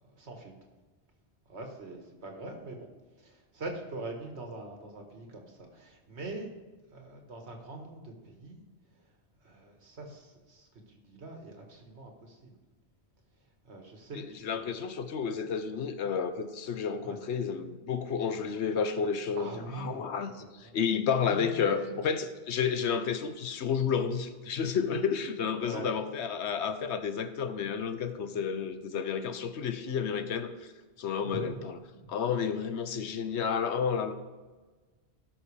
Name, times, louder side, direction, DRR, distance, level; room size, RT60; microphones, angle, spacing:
voice 1, 0.1-0.5 1.5-2.9 3.2-6.5 6.9-8.6 8.9-9.0 9.4-12.6 13.6-14.8 17.0-17.2 19.3-20.1 20.4-20.8 21.3-22.1 25.6-26.0 31.2-31.6 32.0-32.2, right 2 dB, 80° right, 2 dB, 1.9 m, -43 dB
voice 2, 14.1-30.7 31.0-31.7 32.1-34.1, left 6 dB, 90° left, 10 dB, 1.1 m, -31 dB
17.5 x 6.1 x 3.4 m, 1.3 s
omnidirectional pair, 1.1 m